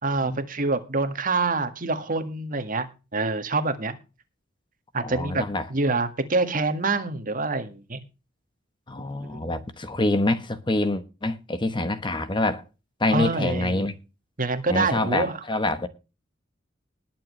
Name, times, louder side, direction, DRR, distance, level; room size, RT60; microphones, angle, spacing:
voice 1, 0.0-4.0 4.9-8.0 9.2-9.5 13.1-13.9 14.4-15.4, right 3 dB, 45° right, 1.8 m, -26 dB
voice 2, 5.0-5.7 8.9-12.6 13.0-13.9 14.7-15.9, left 2 dB, 25° left, 1.1 m, -26 dB
20.0 x 7.5 x 3.2 m
head